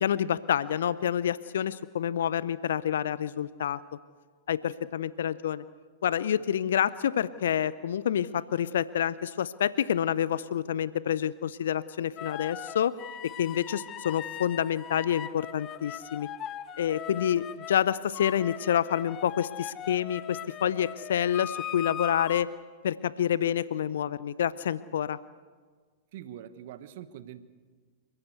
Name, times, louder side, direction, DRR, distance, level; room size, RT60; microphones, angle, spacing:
voice 1, 0.0-3.8 4.5-5.6 6.0-13.0 13.2-16.3 16.8-22.5 22.8-25.2, left 9 dB, 65° left, 18 dB, 0.6 m, -28 dB
sound 1, 12.2-17.8 18.1-22.4, left 10 dB, 30° left, 0.9 m, -39 dB
voice 2, 26.1-27.4, right 11 dB, 55° right, 13 dB, 1.2 m, -43 dB
29.0 x 15.5 x 8.0 m, 1.5 s
figure-of-eight pair, 95°, 0 cm